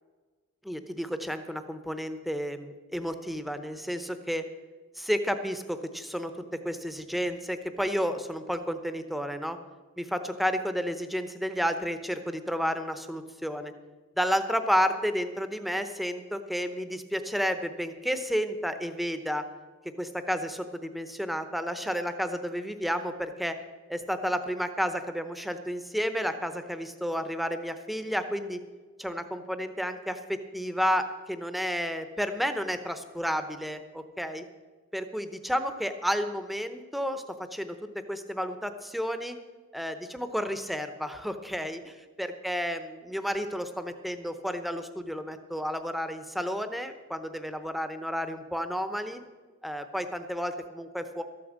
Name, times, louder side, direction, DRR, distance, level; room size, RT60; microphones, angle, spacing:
voice 1, 0.7-4.4 5.0-6.3 6.6-9.6 10.0-13.7 14.2-19.4 20.0-23.5 23.9-28.6 29.0-34.4 34.9-37.2 37.5-39.4 39.7-49.2 49.6-51.2, equal, ahead, 9 dB, 0.7 m, -31 dB
13.0 x 8.7 x 7.4 m, 1.4 s
head